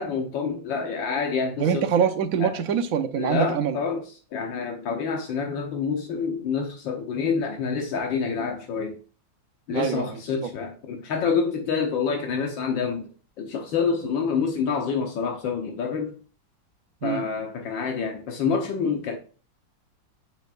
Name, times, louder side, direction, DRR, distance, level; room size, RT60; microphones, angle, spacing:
voice 1, 0.0-1.9 2.4-2.5 3.2-4.0 4.3-9.0 9.7-13.1 13.4-16.1 17.0-19.2, left 5 dB, 85° left, 1.8 m, -27 dB
voice 2, 1.6-3.8 9.7-10.5 17.0-17.2, right 7 dB, 60° right, 1.1 m, -25 dB
7.8 x 7.2 x 2.5 m
omnidirectional pair, 2.0 m